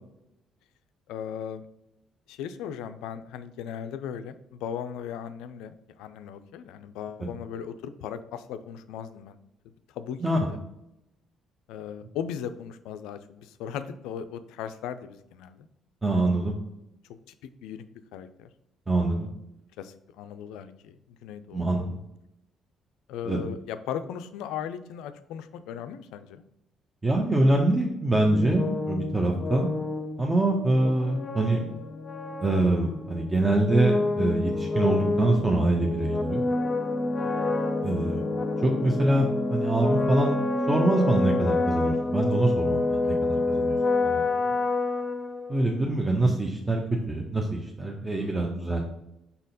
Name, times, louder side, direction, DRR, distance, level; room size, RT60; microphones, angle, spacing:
voice 1, 1.1-1.7 2.3-9.4 9.9-10.6 11.7-15.7 17.1-17.8 18.1-18.5 18.9-19.3 19.8-21.6 23.1-26.4 37.2-37.6 43.0-43.2 44.2-44.6 48.0-48.4, left 8 dB, 70° left, 11 dB, 0.4 m, -38 dB
voice 2, 16.0-16.5 18.9-19.3 21.5-22.0 23.2-23.4 27.0-29.7 30.2-31.6 32.4-36.4 37.8-38.2 38.6-40.4 40.7-43.8 44.0-44.3 45.5-46.8 47.1-48.8, right 2 dB, 20° right, 1 dB, 0.9 m, -25 dB
sound 1, 28.1-45.8, left 2 dB, 25° left, 0.7 m, -28 dB
5.7 x 4.1 x 4.0 m, 0.84 s
hypercardioid pair, 45°, 0 cm